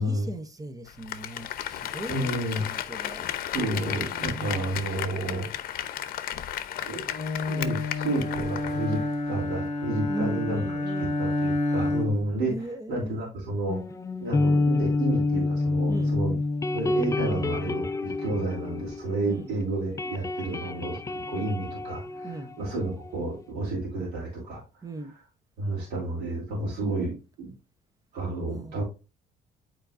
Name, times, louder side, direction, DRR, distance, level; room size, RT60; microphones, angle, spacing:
voice 1, 0.0-3.3 4.2-4.7 10.1-11.2 12.5-13.3 15.9-16.1 19.2-19.5 22.2-22.6 24.8-25.1 28.5-28.8, right 2 dB, 20° right, 0.7 m, -38 dB
Applause, 0.9-9.1 9.4-9.5, left 11 dB, 60° left, 0.7 m, -34 dB
voice 2, 2.1-3.0 3.5-5.8 6.8-7.0 7.4-13.8 14.2-16.4 16.7-21.0 21.3-25.2 25.6-27.5 28.1-28.8, right 2 dB, 85° right, 3.0 m, -31 dB
Bowed string instrument, 7.1-12.3, left 2 dB, 40° left, 1.1 m, -29 dB
sound 1, 13.7-19.5 19.8-23.2, left 3 dB, 20° left, 0.4 m, -28 dB
8.8 x 4.5 x 2.5 m
cardioid pair, 110°, 17 cm